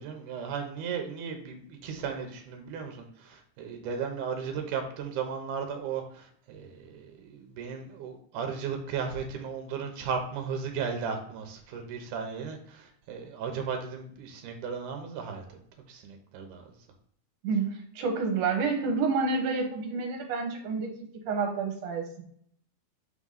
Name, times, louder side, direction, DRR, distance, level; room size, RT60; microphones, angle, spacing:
voice 1, 0.0-15.4 15.9-16.7, right 6 dB, 85° right, 4 dB, 2.3 m, -35 dB
voice 2, 18.0-20.9 21.3-22.2, right 4 dB, 65° right, 3 dB, 2.2 m, -28 dB
5.7 x 3.6 x 5.6 m, 0.63 s
omnidirectional pair, 3.6 m